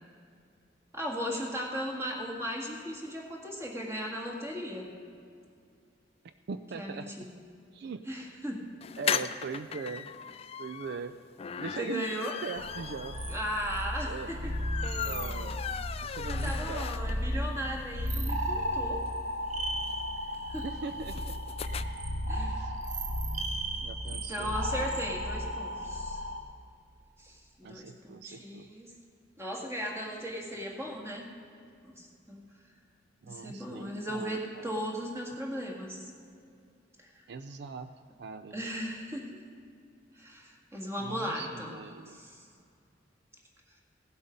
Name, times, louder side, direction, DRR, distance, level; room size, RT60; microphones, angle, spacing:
voice 1, 0.9-4.9 6.7-7.3 8.1-8.6 11.8-12.3 13.3-14.5 16.3-19.0 20.5-20.6 22.3-22.6 24.1-26.2 27.2-28.9 29.4-31.2 31.8-32.4 33.2-36.1 38.5-39.3 40.1-41.7 42.1-42.4, equal, 15° right, -1 dB, 1.9 m, -37 dB
voice 2, 6.2-7.1 7.7-8.0 9.0-10.1 10.6-11.2 11.6-13.2 14.1-14.4 14.9-15.6 16.0-17.5 20.6-21.4 22.3-22.8 23.8-25.0 27.6-28.7 33.2-34.7 37.3-37.9 38.2-38.6 41.0-42.2, right 5 dB, 65° right, 10 dB, 0.4 m, -41 dB
sound 1, 8.8-17.4 17.8-17.9 18.1-18.2 18.4-21.8, left 7 dB, 35° left, 0.3 m, -38 dB
sound 2, 12.6-26.4, equal, 45° right, 1.1 m, -34 dB
17.0 x 7.9 x 5.2 m, 2.4 s
head